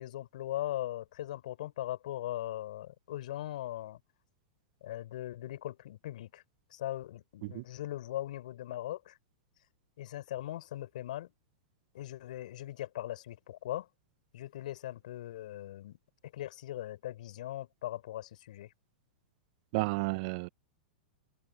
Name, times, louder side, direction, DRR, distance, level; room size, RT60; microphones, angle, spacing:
voice 1, 0.0-4.0 4.8-6.4 6.7-9.2 10.0-11.3 11.9-13.9 14.3-16.0 16.3-18.7, left 13 dB, 65° left, 4.1 m, -39 dB
voice 2, 19.7-20.5, right 26 dB, 50° right, 0.8 m, -32 dB
hypercardioid pair, 105°, 5 cm